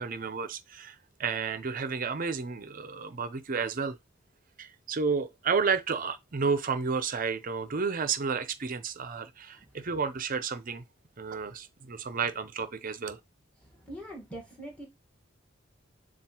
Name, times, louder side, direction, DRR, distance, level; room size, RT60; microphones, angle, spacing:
voice 1, 0.0-4.0 4.6-10.8 11.2-13.2, right 5 dB, 45° right, 0.6 m, -31 dB
voice 2, 13.7-14.8, right 1 dB, 5° left, 1.5 m, -42 dB
7.2 x 2.4 x 2.9 m
head